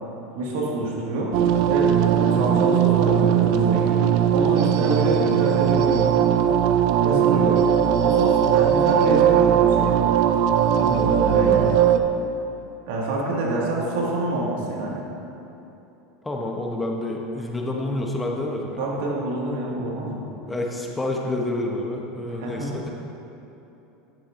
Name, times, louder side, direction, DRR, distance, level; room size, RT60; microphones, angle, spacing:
voice 1, 0.3-1.3 1.7-4.0 4.3-6.1 7.0-7.6 8.0-10.0 10.7-11.8 12.9-15.0 18.8-20.3 22.3-22.7, right 2 dB, 80° right, -3 dB, 1.7 m, -27 dB
sound 1, 1.3-12.0, right 9 dB, 60° right, 0.4 m, -19 dB
voice 2, 10.8-11.3 16.2-18.8 20.5-22.9, left 2 dB, 10° left, 0 dB, 0.8 m, -29 dB
10.5 x 7.3 x 2.5 m, 3.0 s
supercardioid pair, 130°, 0 cm